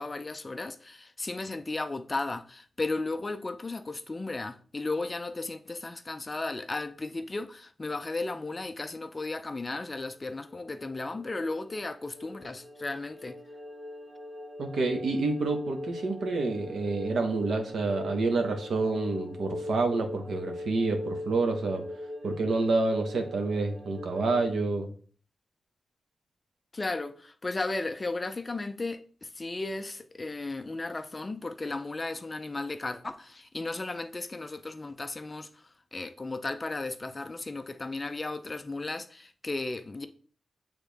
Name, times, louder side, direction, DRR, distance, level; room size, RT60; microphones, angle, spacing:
voice 1, 0.0-13.4 26.7-35.6 35.9-40.1, left 2 dB, 20° left, 0.4 m, -35 dB
sound 1, 10.3-24.5, left 1 dB, 45° right, 0.9 m, -41 dB
voice 2, 14.6-21.8 22.2-24.9, right 3 dB, 75° right, 1.2 m, -28 dB
8.3 x 3.5 x 3.5 m
wide cardioid pair, 170°, 0 cm